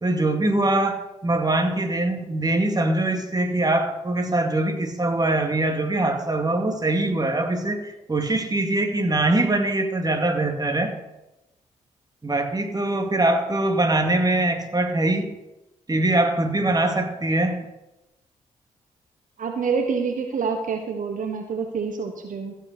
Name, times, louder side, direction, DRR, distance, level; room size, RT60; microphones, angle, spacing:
voice 1, 0.0-10.9 12.2-15.3 15.9-17.6, right 2 dB, 25° right, 5 dB, 2.3 m, -23 dB
voice 2, 19.4-22.5, right 5 dB, 60° right, 5 dB, 1.3 m, -27 dB
15.0 x 5.7 x 6.7 m, 0.96 s
hypercardioid pair, 40°, 16 cm